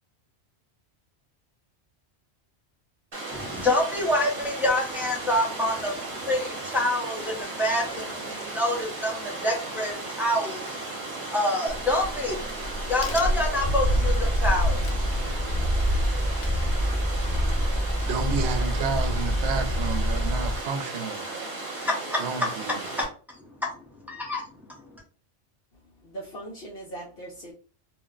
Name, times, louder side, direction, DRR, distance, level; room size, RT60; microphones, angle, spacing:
Water, 3.1-23.0, right 2 dB, 50° right, 1.1 m, -35 dB
voice 1, 3.3-10.9 11.3-12.6 12.9-15.1 21.8-22.2 23.0-23.1 23.6-23.7 24.1-24.4, left 1 dB, ahead, 0.5 m, -27 dB
Crack, 11.7-17.1, equal, 90° left, 0.9 m, -30 dB
Purr, 13.6-20.6, equal, 20° left, 0.9 m, -26 dB
voice 2, 18.0-21.3 22.2-22.9, right 5 dB, 75° right, 0.8 m, -31 dB
voice 3, 25.8-27.5, right 2 dB, 60° left, 0.8 m, -40 dB
2.4 x 2.1 x 3.6 m
omnidirectional pair, 1.2 m